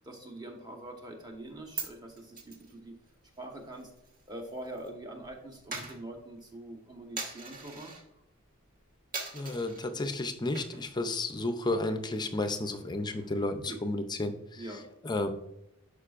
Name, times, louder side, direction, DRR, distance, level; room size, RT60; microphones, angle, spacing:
voice 1, 0.0-2.9 3.4-3.9 4.3-7.9 13.6-13.8 14.6-14.9, right 1 dB, 20° right, 2 dB, 1.2 m, -44 dB
Coin (dropping), 1.3-4.9 5.1-8.1 8.5-8.8 9.1-9.9 10.4-11.0 11.3-11.4 11.8-13.7, right 4 dB, 40° right, 1.4 m, -43 dB
voice 2, 9.3-14.6 15.0-15.3, left 2 dB, 20° left, 8 dB, 0.5 m, -32 dB
11.0 x 5.1 x 2.5 m, 0.85 s
head